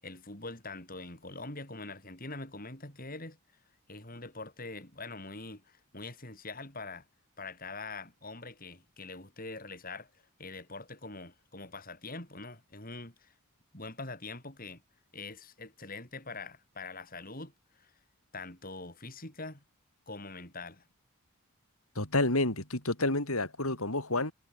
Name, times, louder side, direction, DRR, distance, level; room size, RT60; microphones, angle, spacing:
voice 1, 0.0-3.4 3.9-7.1 7.4-10.1 10.4-13.3 13.7-14.8 15.1-17.9 18.3-19.6 20.1-20.8, left 3 dB, 40° left, 7.1 m, -44 dB
voice 2, 22.0-24.3, left 2 dB, 75° left, 5.8 m, -29 dB
head